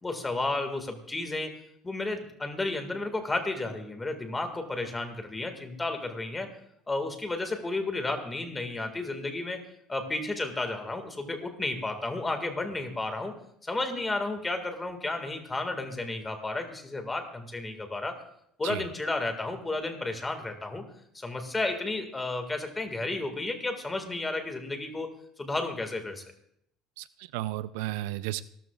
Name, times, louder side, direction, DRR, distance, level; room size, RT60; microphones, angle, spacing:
voice 1, 0.0-6.5 6.9-9.6 9.9-13.3 13.6-18.2 18.6-20.8 21.1-25.1 25.4-26.2, left 2 dB, 15° left, 6 dB, 1.9 m, -32 dB
voice 2, 27.0-28.4, right 16 dB, 90° right, 15 dB, 0.5 m, -33 dB
26.0 x 13.5 x 2.4 m, 0.71 s
cardioid pair, 150°, 0 cm